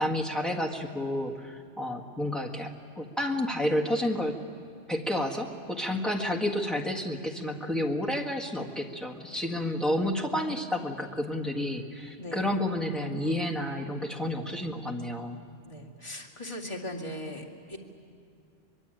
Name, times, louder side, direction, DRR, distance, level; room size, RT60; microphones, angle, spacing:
voice 1, 0.0-2.7 3.0-4.3 4.9-15.4, left 1 dB, ahead, 1 dB, 1.7 m, -30 dB
voice 2, 15.7-17.8, left 1 dB, 25° left, -1 dB, 2.5 m, -39 dB
24.5 x 21.5 x 9.1 m, 2.3 s
omnidirectional pair, 1.2 m